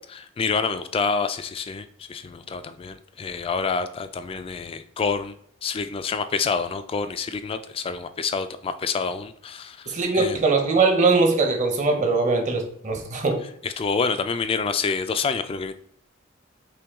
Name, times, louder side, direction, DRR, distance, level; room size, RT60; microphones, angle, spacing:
voice 1, 0.1-5.3 5.6-10.4 13.6-15.7, left 5 dB, 30° left, 10 dB, 0.3 m, -27 dB
voice 2, 9.9-13.4, right 3 dB, 40° right, 4 dB, 0.8 m, -21 dB
5.7 x 2.3 x 3.5 m, 0.64 s
head